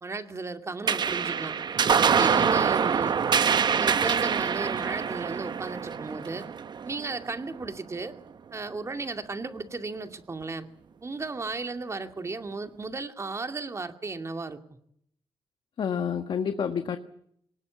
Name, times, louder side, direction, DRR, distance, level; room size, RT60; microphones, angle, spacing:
voice 1, 0.0-1.5 2.1-3.2 3.8-6.5 6.8-8.1 8.5-10.6 11.0-14.6, right 3 dB, 30° right, 7 dB, 2.4 m, -35 dB
sound 1, 0.9-7.6, right 6 dB, 55° right, 0.9 m, -25 dB
voice 2, 2.3-2.6 15.8-17.0, left 7 dB, 65° left, 8 dB, 1.6 m, -29 dB
23.5 x 19.5 x 8.3 m, 0.70 s
cardioid pair, 95°, 9 cm